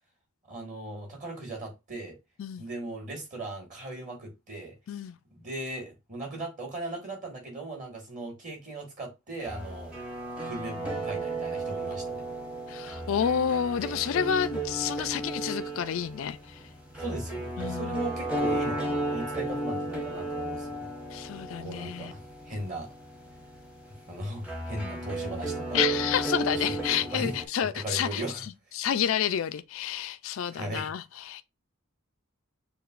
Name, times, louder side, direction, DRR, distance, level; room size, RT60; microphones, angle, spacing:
voice 1, 0.5-2.2 2.6-4.8 5.4-9.9 10.4-12.2 17.0-20.9 21.6-22.2 22.5-22.9 24.1-25.8 26.4-27.3 27.6-28.4 30.5-30.9, right 1 dB, 35° right, 1.7 m, -38 dB
sound 1, 9.4-27.5, right 2 dB, 5° right, 0.8 m, -34 dB
voice 2, 12.7-16.6 17.6-18.1 21.1-22.1 25.7-31.4, left 8 dB, 70° left, 0.3 m, -30 dB
6.6 x 2.3 x 2.4 m
head